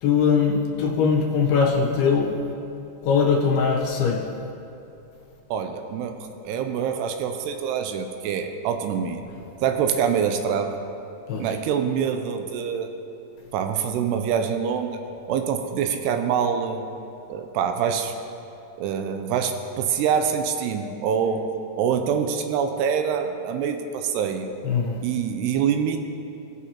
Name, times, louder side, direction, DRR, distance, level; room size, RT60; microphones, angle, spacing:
voice 1, 0.0-2.4 3.0-4.3 11.3-11.4 24.6-25.0, left 6 dB, 75° left, -1 dB, 2.6 m, -21 dB
voice 2, 5.5-9.2 9.6-10.8 11.4-12.9 13.5-15.0 15.3-16.8 17.3-18.2 18.8-21.5 21.8-24.5 25.0-26.0, right 7 dB, 85° right, 6 dB, 2.6 m, -25 dB
18.0 x 6.4 x 2.9 m, 2.9 s
omnidirectional pair, 4.9 m